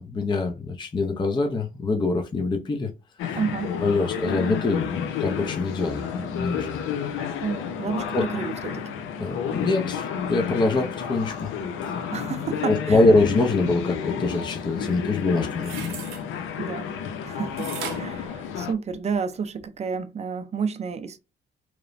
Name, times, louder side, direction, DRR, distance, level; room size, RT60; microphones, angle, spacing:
voice 1, 0.0-2.9 3.3-3.4 3.8-6.8 7.2-7.3 8.1-8.2 9.2-11.5 12.6-15.9, left 2 dB, 25° left, 0.5 m, -24 dB
sound 1, 3.2-18.7, left 7 dB, 90° left, 0.5 m, -31 dB
voice 2, 3.3-3.7 7.4-9.0 12.1-13.1 16.6-16.8 17.2-17.7 17.9-21.2, right 6 dB, 35° right, 0.4 m, -30 dB
sound 2, 15.5-16.2 17.6-19.1 19.6-19.7, right 7 dB, 85° right, 0.7 m, -37 dB
3.0 x 2.0 x 2.5 m
cardioid pair, 90°, 20 cm